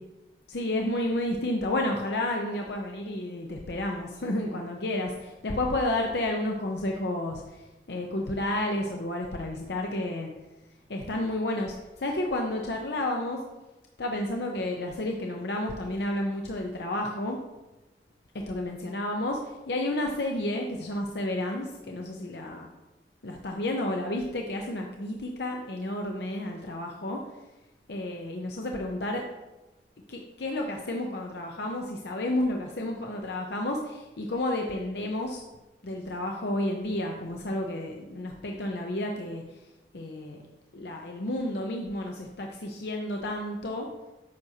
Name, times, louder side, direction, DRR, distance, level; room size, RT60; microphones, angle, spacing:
voice 1, 0.5-7.4 7.9-10.3 10.9-13.4 14.0-17.4 18.5-19.4 19.7-22.7 23.2-27.2 27.9-29.2 30.1-35.4 35.8-39.4 39.9-40.4 40.7-43.9, left 1 dB, 65° left, 1 dB, 0.7 m, -31 dB
9.4 x 6.4 x 2.8 m, 1.1 s
head